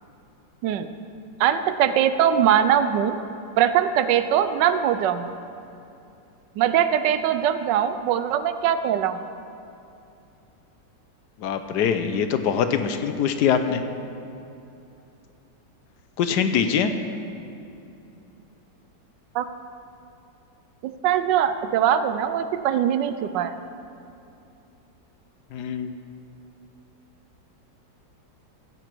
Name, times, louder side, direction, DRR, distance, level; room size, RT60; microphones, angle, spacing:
voice 1, 1.4-3.2 3.6-5.3 6.6-9.2 19.3-19.4 20.8-23.5, right 9 dB, 80° right, 11 dB, 1.2 m, -21 dB
voice 2, 11.4-13.8 16.2-17.0 25.5-25.9, left 7 dB, 70° left, 8 dB, 1.1 m, -23 dB
15.5 x 8.0 x 4.5 m, 2.8 s
omnidirectional pair, 2.0 m